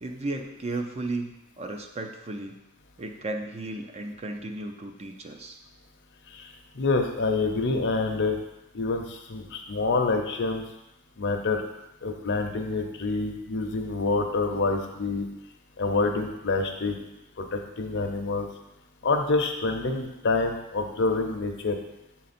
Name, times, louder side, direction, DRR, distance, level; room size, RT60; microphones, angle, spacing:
voice 1, 0.0-2.6 3.0-5.6, right 2 dB, 30° right, 4 dB, 0.5 m, -34 dB
voice 2, 6.7-8.4 8.7-10.6 11.2-11.6 12.0-15.3 15.8-17.0 17.4-18.5 19.0-21.8, left 3 dB, 55° left, 4 dB, 0.7 m, -27 dB
7.3 x 4.0 x 4.3 m, 0.91 s
head